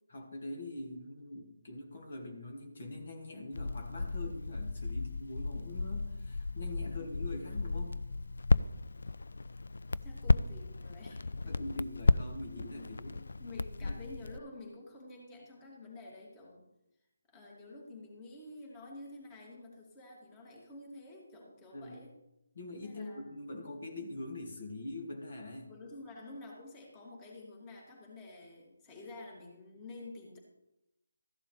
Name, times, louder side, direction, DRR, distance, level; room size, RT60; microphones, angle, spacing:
voice 1, 0.1-8.0 11.1-11.2 11.4-13.2 13.8-14.0 21.7-22.0 22.6-25.7, left 2 dB, 50° left, 1 dB, 2.3 m, -43 dB
Crackle, 3.5-14.4, left 3 dB, 70° left, 0.4 m, -33 dB
voice 2, 10.0-11.5 12.8-12.9 13.4-16.6 17.3-22.1 22.8-23.3 25.6-30.4, left 2 dB, 20° left, -1 dB, 2.6 m, -49 dB
14.5 x 11.0 x 3.4 m, 0.89 s
figure-of-eight pair, 155°, 0 cm